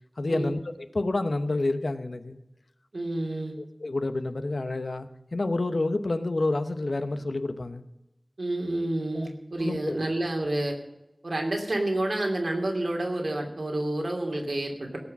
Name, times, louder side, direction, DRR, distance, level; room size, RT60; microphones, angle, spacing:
voice 1, 0.2-0.6 0.9-2.4 3.6-7.8 9.2-9.3 9.6-10.0, left 2 dB, 80° left, 10 dB, 0.9 m, -29 dB
voice 2, 2.9-3.6 8.4-10.8 11.2-15.0, right 1 dB, 85° right, 1 dB, 2.7 m, -29 dB
17.5 x 6.1 x 7.5 m, 0.92 s
wide cardioid pair, 50°, 0 cm